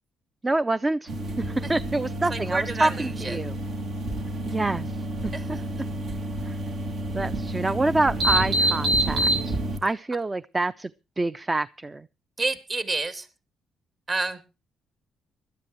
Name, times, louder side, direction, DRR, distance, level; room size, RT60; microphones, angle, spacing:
voice 1, 0.4-1.1 1.4-3.5 4.5-5.0 5.2-5.6 6.5-6.6 7.1-10.9 11.2-12.1, right 2 dB, 20° right, 0.6 m, -27 dB
sound 1, 1.1-9.8, right 1 dB, 65° right, 2.6 m, -28 dB
voice 2, 2.3-3.4 5.3-5.7 12.4-13.3 14.1-14.4, right 3 dB, 35° right, 3.1 m, -29 dB
20.0 x 13.0 x 3.1 m
cardioid pair, 90°, 0 cm